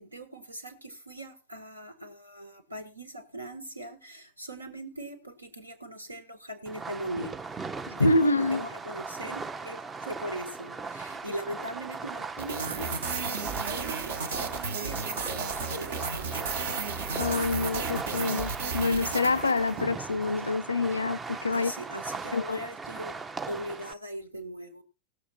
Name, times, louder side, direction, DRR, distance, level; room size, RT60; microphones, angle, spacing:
voice 1, 0.0-7.3 7.9-17.0 21.5-23.2 23.5-24.8, right 1 dB, 80° right, 1.7 m, -40 dB
Fireworks, 6.7-23.9, right 4 dB, 15° right, 0.5 m, -38 dB
voice 2, 7.9-8.6 17.2-21.7 22.3-22.6, left 3 dB, 80° left, 0.5 m, -26 dB
sound 1, 12.4-19.9, right 4 dB, 60° right, 1.2 m, -34 dB
17.0 x 7.1 x 4.3 m
figure-of-eight pair, 90°, 0 cm